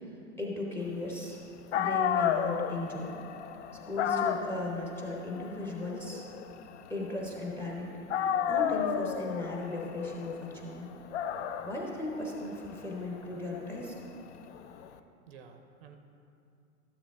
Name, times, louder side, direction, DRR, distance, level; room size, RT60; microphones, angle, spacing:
voice 1, 0.0-1.4 1.7-3.1 3.9-6.2 6.9-7.9 8.4-10.9 11.6-13.9, left 2 dB, 5° left, -2 dB, 0.7 m, -37 dB
Dog, 1.4-1.5 1.7-7.7 8.1-14.9, left 8 dB, 50° left, 0.5 m, -33 dB
voice 2, 10.6-11.7 14.5-16.0, right 6 dB, 40° right, 6 dB, 0.7 m, -57 dB
13.0 x 7.2 x 3.5 m, 2.5 s
hypercardioid pair, 125°, 47 cm